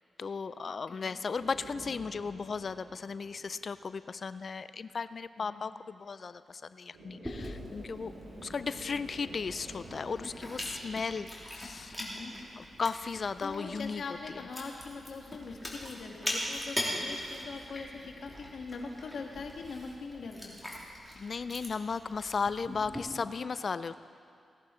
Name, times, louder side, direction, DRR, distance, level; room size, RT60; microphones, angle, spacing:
voice 1, 0.2-8.1 8.4-12.0 12.6-14.0 14.3-14.4 21.2-23.9, left 5 dB, 60° left, 14 dB, 0.4 m, -36 dB
voice 2, 0.9-1.2 5.4-5.7 12.0-12.4 13.4-20.6, left 4 dB, 75° left, 2 dB, 1.6 m, -42 dB
sound 1, 1.3-4.1 6.9-12.3, right 1 dB, 90° right, 3.0 m, -50 dB
Chewing mastication, 7.2-23.0, left 1 dB, ahead, 3.4 m, -41 dB
18.0 x 11.5 x 4.3 m, 2.3 s
supercardioid pair, 50°, 0 cm